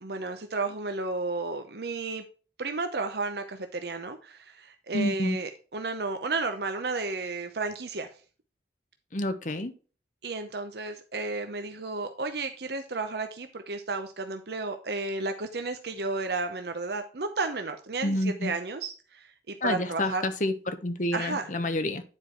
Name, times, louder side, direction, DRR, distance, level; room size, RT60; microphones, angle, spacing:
voice 1, 0.0-2.2 2.6-8.1 10.2-20.3 21.1-21.5, right 3 dB, 60° right, 7 dB, 0.8 m, -33 dB
voice 2, 4.9-5.4 9.1-9.7 18.0-18.5 19.6-22.0, left 1 dB, 45° left, 9 dB, 1.0 m, -29 dB
9.8 x 4.6 x 4.5 m, 0.36 s
head